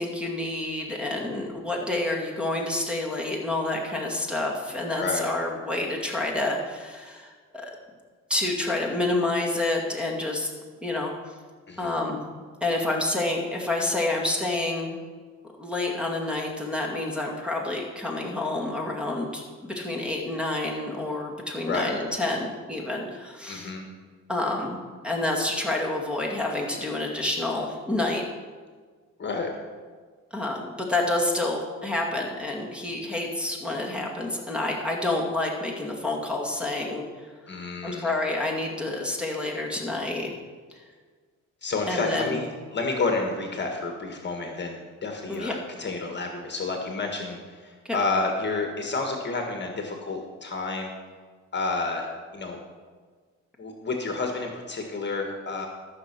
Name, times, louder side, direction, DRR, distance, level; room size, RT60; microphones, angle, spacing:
voice 1, 0.0-7.7 8.3-10.5 10.8-11.4 11.8-12.2 12.6-15.0 15.6-23.7 24.3-24.8 25.0-28.2 30.3-40.3 41.9-42.4 45.3-45.5 47.8-48.0, left 2 dB, 5° right, 0 dB, 2.3 m, -28 dB
voice 2, 5.0-5.3 11.7-11.9 21.7-22.0 23.5-23.9 29.2-29.5 37.5-38.1 41.6-50.9 51.5-52.1 52.3-52.6 53.6-55.7, left 3 dB, 35° left, 3 dB, 1.7 m, -30 dB
13.5 x 6.5 x 6.1 m, 1.5 s
cardioid pair, 90°, 30 cm